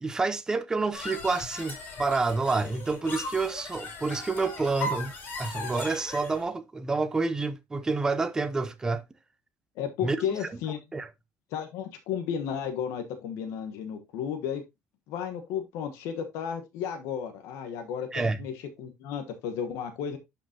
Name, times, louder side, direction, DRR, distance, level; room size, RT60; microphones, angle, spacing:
voice 1, 0.0-5.1 5.4-9.0 10.0-10.5 10.9-11.1 18.1-18.4, right 3 dB, 15° right, 0.7 m, -28 dB
sound 1, 0.9-6.4, left 2 dB, 40° left, 3.0 m, -38 dB
voice 2, 9.8-10.8 11.5-14.6 15.1-18.5 18.8-20.2, left 8 dB, 85° left, 1.3 m, -33 dB
11.5 x 5.1 x 2.9 m
cardioid pair, 165°, 5 cm